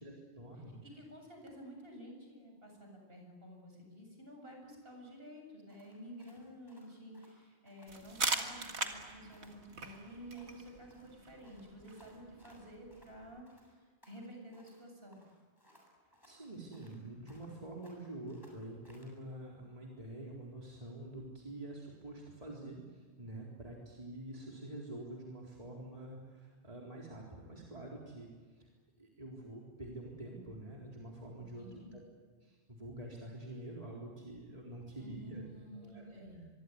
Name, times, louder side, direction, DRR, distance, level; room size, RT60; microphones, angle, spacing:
voice 1, 0.0-0.8 16.0-28.7 29.0-32.0 32.4-35.4 35.7-36.3, right 1 dB, 35° right, -3 dB, 4.1 m, -47 dB
voice 2, 0.8-13.8 14.0-15.2 31.6-32.0 35.0-36.5, equal, 60° right, 2 dB, 7.6 m, -51 dB
sound 1, 5.7-8.0 8.2-8.5 8.8-10.7 10.9-13.2 13.5-14.8 15.1-17.6 17.8-19.2, equal, 20° left, 7.4 m, -65 dB
sound 2, 7.9-13.4, right 3 dB, 90° right, 2.2 m, -41 dB
25.5 x 23.5 x 9.6 m, 1.4 s
omnidirectional pair, 1.1 m